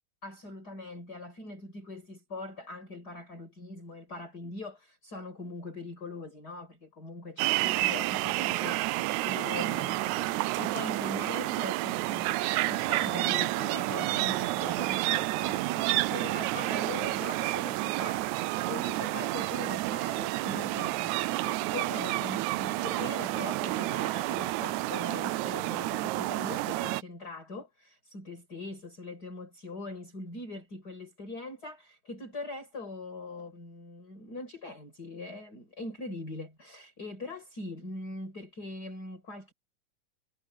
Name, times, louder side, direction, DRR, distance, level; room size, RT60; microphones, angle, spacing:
voice 1, 0.2-12.4 12.7-39.5, left 2 dB, 25° left, 6.7 m, -42 dB
sound 1, 7.4-27.0, right 18 dB, 80° right, 1.8 m, -30 dB
omnidirectional pair, 3.8 m